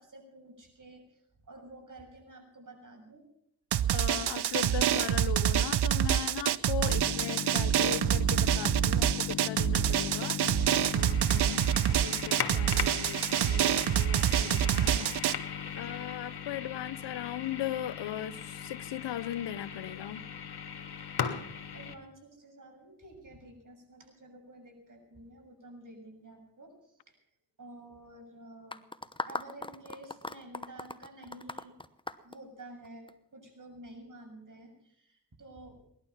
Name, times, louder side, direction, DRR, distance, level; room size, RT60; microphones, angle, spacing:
voice 1, 0.0-3.2 6.9-7.1 21.7-27.2 27.6-28.8 29.3-31.7 32.2-35.8, right 1 dB, 50° right, 2 dB, 6.9 m, -51 dB
Drum, 3.7-15.3, right 10 dB, 70° right, 0.7 m, -27 dB
voice 2, 3.9-10.4 10.9-20.2, left 12 dB, 85° left, 18 dB, 0.7 m, -38 dB
sound 1, 6.8-21.9, left 7 dB, 65° left, 1.6 m, -38 dB
sound 2, 28.7-33.1, left 2 dB, 10° left, 1.0 m, -39 dB
19.5 x 12.0 x 5.8 m, 0.73 s
cardioid pair, 45°, 41 cm